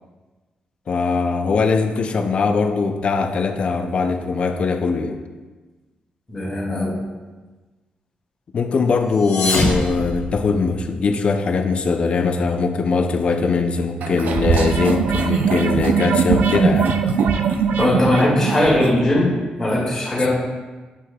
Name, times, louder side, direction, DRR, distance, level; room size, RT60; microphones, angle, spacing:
voice 1, 0.9-5.2 8.5-17.0, left 4 dB, 40° left, 6 dB, 0.4 m, -21 dB
voice 2, 6.3-7.0 17.8-20.3, left 1 dB, 15° left, -6 dB, 2.0 m, -19 dB
sound 1, 9.0-10.9, left 2 dB, 85° left, 1.6 m, -24 dB
sound 2, 14.0-18.9, right 6 dB, 85° right, 0.4 m, -20 dB
7.6 x 6.2 x 2.3 m, 1.3 s
wide cardioid pair, 160°, 3 cm